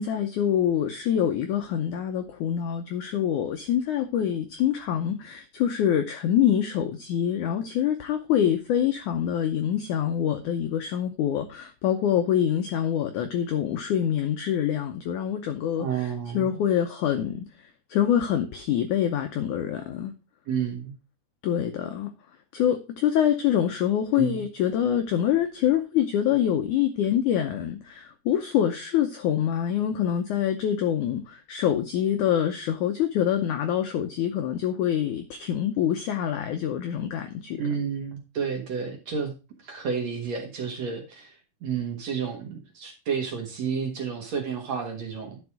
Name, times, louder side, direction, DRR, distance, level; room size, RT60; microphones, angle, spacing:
voice 1, 0.0-20.2 21.4-22.1 22.5-37.6, left 10 dB, 85° left, 1.7 m, -25 dB
voice 2, 15.8-16.6 20.5-20.9 24.2-24.4 37.6-39.3 39.6-45.4, right 6 dB, 55° right, 2.2 m, -31 dB
11.0 x 5.4 x 4.8 m
omnidirectional pair, 4.6 m